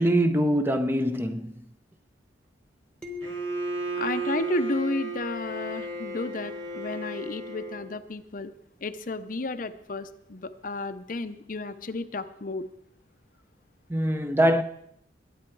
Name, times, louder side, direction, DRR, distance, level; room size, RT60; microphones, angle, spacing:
voice 1, 0.0-1.5 13.9-14.6, equal, 10° right, 0.7 m, -23 dB
sound 1, 3.0-5.6, left 5 dB, 5° left, 1.2 m, -41 dB
Bowed string instrument, 3.2-8.0, right 3 dB, 90° right, 2.6 m, -34 dB
voice 2, 3.9-8.5 8.8-12.7, left 3 dB, 45° left, 0.7 m, -32 dB
22.0 x 8.8 x 4.6 m
head